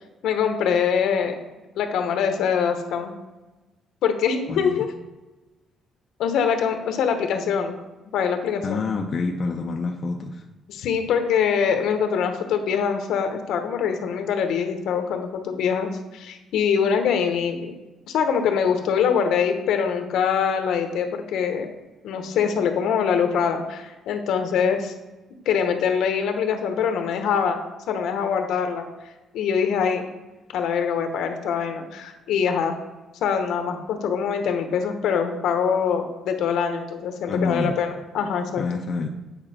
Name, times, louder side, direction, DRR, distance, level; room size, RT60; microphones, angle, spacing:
voice 1, 0.2-1.3 1.8-3.1 4.0-4.9 6.2-7.8 8.1-8.8 10.7-17.7 18.1-21.7 22.0-25.0 25.4-27.6 27.9-28.9 29.3-30.0 30.5-32.7 33.2-38.6, left 7 dB, 65° left, 6 dB, 1.0 m, -23 dB
voice 2, 4.5-4.8 8.6-10.4 37.3-37.8 38.6-39.1, left 4 dB, 30° left, 2 dB, 0.5 m, -27 dB
8.9 x 5.3 x 4.3 m, 1.1 s
cardioid pair, 175°, 0 cm